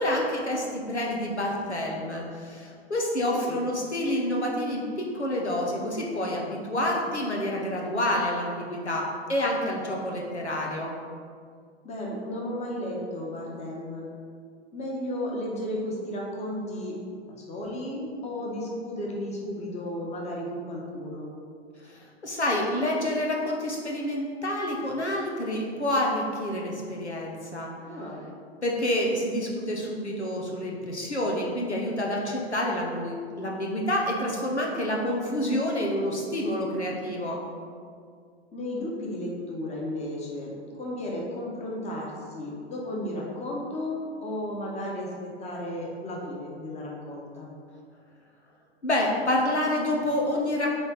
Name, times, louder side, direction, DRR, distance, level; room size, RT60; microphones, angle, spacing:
voice 1, 0.0-10.9 21.8-27.7 28.6-37.4 48.8-50.8, left 1 dB, 90° left, -1 dB, 1.1 m, -28 dB
voice 2, 11.8-14.1 14.7-17.0 17.3-21.3 27.9-28.2 38.5-47.5, left 1 dB, 20° left, -2 dB, 1.4 m, -34 dB
8.1 x 3.5 x 4.7 m, 2.1 s
figure-of-eight pair, 100°, 33 cm